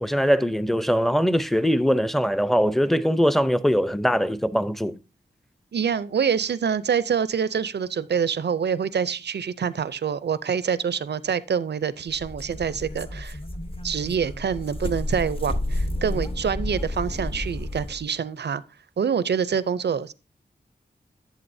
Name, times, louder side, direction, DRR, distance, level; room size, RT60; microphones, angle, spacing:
voice 1, 0.0-5.0, equal, ahead, 0.6 m, -22 dB
voice 2, 5.7-13.4 13.8-18.6 19.0-20.1, right 7 dB, 75° right, 0.5 m, -26 dB
sound 1, 12.1-18.0, left 1 dB, 30° left, 1.0 m, -31 dB
11.0 x 7.5 x 2.7 m
cardioid pair, 50°, 17 cm